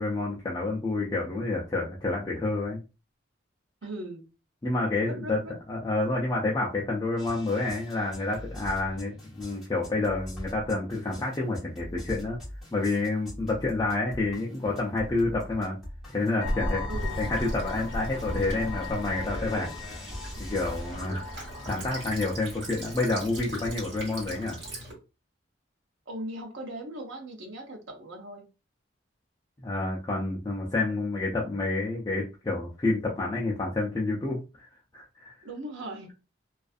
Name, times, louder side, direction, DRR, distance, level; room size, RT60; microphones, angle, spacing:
voice 1, 0.0-2.8 4.6-5.4 5.7-12.4 12.7-15.8 16.1-16.8 17.2-19.7 20.4-21.2 21.7-24.6 29.6-35.3, left 2 dB, 20° left, 0.4 m, -29 dB
voice 2, 3.8-4.2 5.1-5.6 16.9-17.3 26.1-28.5 35.4-36.1, right 1 dB, 80° right, 0.6 m, -39 dB
sound 1, 7.2-21.1, left 1 dB, ahead, 1.1 m, -42 dB
sound 2, 16.4-23.1, left 1 dB, 80° left, 0.6 m, -36 dB
Child speech kid speaking / Bird vocalization bird call bird song / Stream, 16.9-24.9, right 1 dB, 65° right, 1.2 m, -40 dB
2.4 x 2.4 x 2.4 m
head